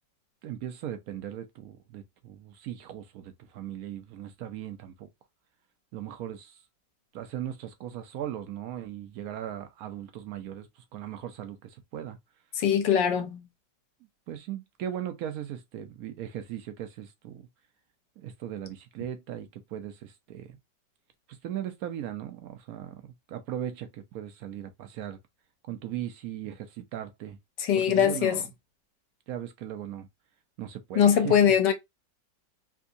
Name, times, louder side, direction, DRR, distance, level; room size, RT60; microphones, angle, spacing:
voice 1, 0.4-5.1 5.9-6.6 7.1-10.7 10.9-12.2 14.3-17.5 18.2-20.6 21.4-23.0 23.3-25.2 25.7-27.4 27.8-28.5 29.3-30.1 30.6-31.5, right 11 dB, 70° right, 0.8 m, -38 dB
voice 2, 12.5-13.4 27.6-28.4 30.9-31.7, left 8 dB, 75° left, 1.4 m, -22 dB
3.5 x 2.8 x 2.5 m
omnidirectional pair, 2.0 m